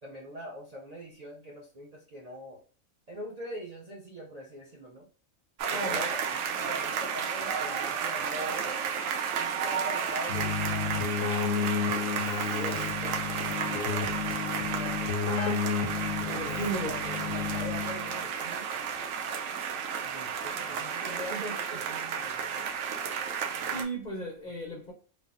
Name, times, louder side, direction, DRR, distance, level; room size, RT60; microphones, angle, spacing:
voice 1, 0.0-2.6 3.1-5.1 5.7-6.2 6.5-8.8 9.2-12.0 12.4-13.2 13.5-15.4 16.3-18.7 20.0-22.7, equal, 50° right, 0.5 m, -43 dB
sound 1, 5.6-23.8, right 7 dB, 80° right, 1.0 m, -32 dB
voice 2, 5.7-6.1 16.2-17.0 23.7-24.9, right 1 dB, 45° left, 0.6 m, -35 dB
Keyboard (musical), 10.3-18.2, left 6 dB, 85° left, 1.0 m, -32 dB
3.3 x 2.0 x 2.4 m
omnidirectional pair, 1.4 m